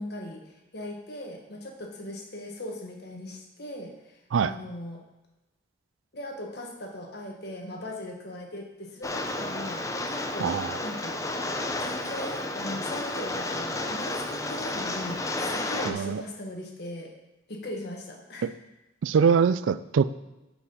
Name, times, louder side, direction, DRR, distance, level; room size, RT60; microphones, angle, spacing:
voice 1, 0.0-5.0 6.1-11.2 11.8-17.1 17.5-18.5, left 1 dB, 60° left, 1 dB, 1.5 m, -39 dB
Rain, 9.0-15.9, left 2 dB, 15° left, 0.5 m, -32 dB
voice 2, 10.4-10.7 15.9-16.2 18.4-18.5 19.0-20.0, right 6 dB, 85° right, 15 dB, 0.4 m, -23 dB
8.2 x 5.0 x 5.4 m, 1.0 s
head